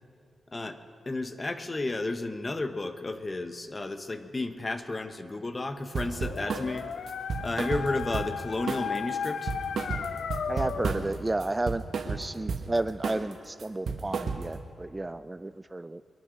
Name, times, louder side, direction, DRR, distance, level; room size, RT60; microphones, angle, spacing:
voice 1, 1.1-6.8 7.4-9.5, left 2 dB, 30° left, 9 dB, 1.2 m, -32 dB
sound 1, 5.9-6.7 7.1-8.4 8.7-9.0 9.2-11.2 11.4-12.7 13.0-13.3 13.6-14.6, right 5 dB, 75° right, 1.3 m, -32 dB
Dog, 6.0-11.1, left 7 dB, 80° left, 0.5 m, -35 dB
voice 2, 10.5-16.0, right 2 dB, 25° right, 14 dB, 0.4 m, -32 dB
22.5 x 9.8 x 6.5 m, 2.2 s
cardioid pair, 65°, 0 cm